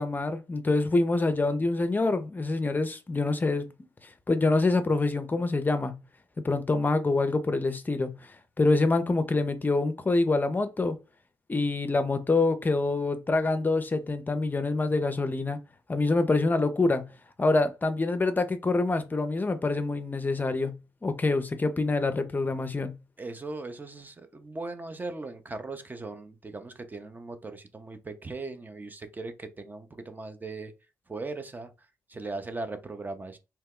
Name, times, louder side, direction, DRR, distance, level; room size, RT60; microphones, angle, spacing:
voice 1, 0.0-3.7 4.3-5.9 6.4-8.3 8.6-11.0 11.5-15.6 15.9-17.1 17.4-20.7 21.0-22.9, left 3 dB, 25° left, 0.5 m, -26 dB
voice 2, 23.2-30.7 31.1-31.7 32.1-33.4, right 3 dB, 25° right, 0.6 m, -38 dB
2.8 x 2.2 x 3.6 m
supercardioid pair, 50°, 7 cm